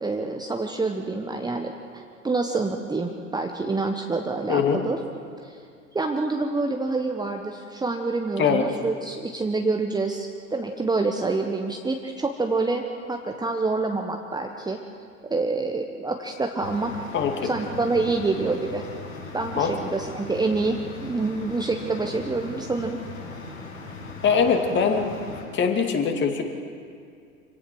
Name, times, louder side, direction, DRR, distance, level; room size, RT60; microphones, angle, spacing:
voice 1, 0.0-5.0 5.4-5.6 5.9-12.8 13.1-14.8 15.3-17.0 17.4-18.8 19.3-20.8 21.0-23.0, right 3 dB, 10° right, 3 dB, 1.3 m, -27 dB
sound 1, 16.6-25.4, left 3 dB, 75° left, 7.6 m, -39 dB
voice 2, 17.1-17.5 19.5-19.7 24.2-25.1 25.5-26.4, left 6 dB, 25° left, 4 dB, 2.5 m, -22 dB
26.5 x 17.0 x 6.3 m, 2.3 s
figure-of-eight pair, 80°, 41 cm